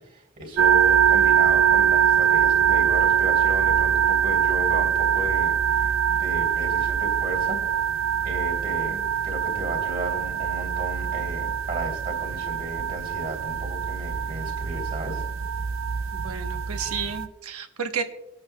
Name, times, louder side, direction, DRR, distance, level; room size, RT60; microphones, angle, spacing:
voice 1, 0.1-7.6 7.9-15.3, right 1 dB, 40° right, -2 dB, 2.8 m, -34 dB
sound 1, 0.6-17.3, right 8 dB, 60° right, 0.5 m, -23 dB
voice 2, 16.1-18.0, right 6 dB, 90° right, 7 dB, 1.1 m, -32 dB
24.5 x 8.8 x 2.3 m, 0.92 s
head